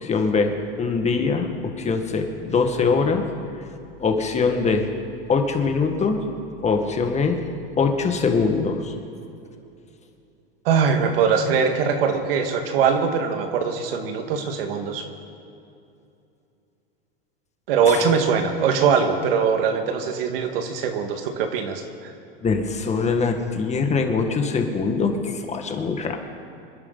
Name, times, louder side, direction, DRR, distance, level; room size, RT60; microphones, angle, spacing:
voice 1, 0.0-3.2 4.0-4.9 5.3-6.2 6.6-7.4 7.8-8.9 17.9-18.0 22.4-26.2, left 4 dB, 25° left, 5 dB, 1.9 m, -22 dB
voice 2, 10.7-15.0 17.7-22.1, right 6 dB, 75° right, 4 dB, 2.0 m, -22 dB
26.5 x 11.0 x 4.1 m, 2.7 s
supercardioid pair, 115°, 29 cm